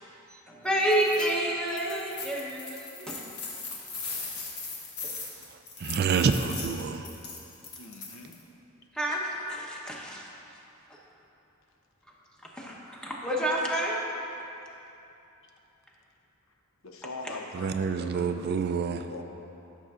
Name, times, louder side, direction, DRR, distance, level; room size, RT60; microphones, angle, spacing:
voice 1, 0.3-3.2 8.9-10.3 10.9-11.0 12.4-14.0, right 1 dB, 5° left, 0.9 m, -29 dB
sound 1, 0.8-1.3 1.7-8.4, left 4 dB, 85° left, 1.3 m, -39 dB
voice 2, 5.4-7.1 17.5-19.0, right 5 dB, 50° right, 0.3 m, -28 dB
voice 3, 7.8-8.3 16.8-18.4 18.8-19.2, left 3 dB, 65° left, 0.7 m, -42 dB
14.0 x 6.5 x 2.5 m
head